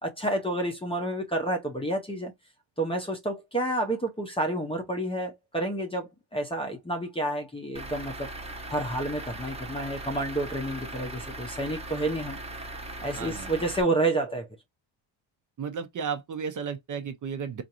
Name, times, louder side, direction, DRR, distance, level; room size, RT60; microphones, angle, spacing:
voice 1, 0.0-2.3 2.8-8.3 8.7-12.4 13.0-14.5, right 1 dB, 10° left, 0.6 m, -29 dB
Truck / Idling, 7.7-13.8, right 1 dB, 15° right, 0.9 m, -39 dB
voice 2, 13.2-13.5 15.6-17.6, right 6 dB, 40° right, 0.6 m, -33 dB
4.3 x 2.5 x 2.9 m
cardioid pair, 135°, 49 cm